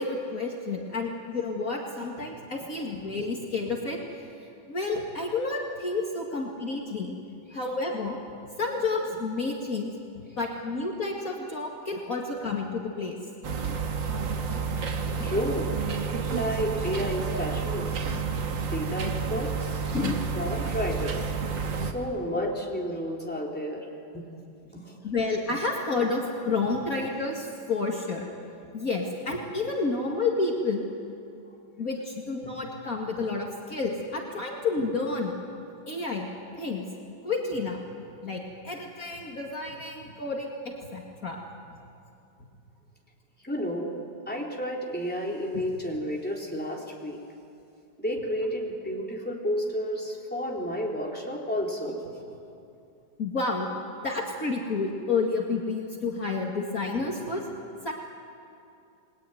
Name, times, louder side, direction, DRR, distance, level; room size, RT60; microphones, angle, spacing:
voice 1, 0.0-4.0 4.7-7.1 7.5-8.2 8.6-13.2 13.6-13.7 15.2-15.3 17.3-17.5 18.1-18.3 18.7-18.8 19.9-20.2 22.3-22.5 25.0-28.3 28.7-30.9 31.8-35.3 35.9-36.3 36.6-36.8 37.2-37.9 38.2-41.4 41.7-41.8 45.5-45.6 53.2-53.7 54.0-57.4 57.8-57.9, left 3 dB, 50° left, -1 dB, 2.6 m, -30 dB
sound 1, 13.4-21.9, right 5 dB, 75° right, 2.3 m, -30 dB
voice 2, 15.2-15.7 16.3-18.2 18.7-19.8 20.3-21.3 21.8-23.8 24.1-24.3 24.7-25.0 43.4-43.9 44.3-47.2 48.0-52.4, equal, 5° left, -2 dB, 3.9 m, -31 dB
29.5 x 21.5 x 9.4 m, 2.6 s
omnidirectional pair, 2.0 m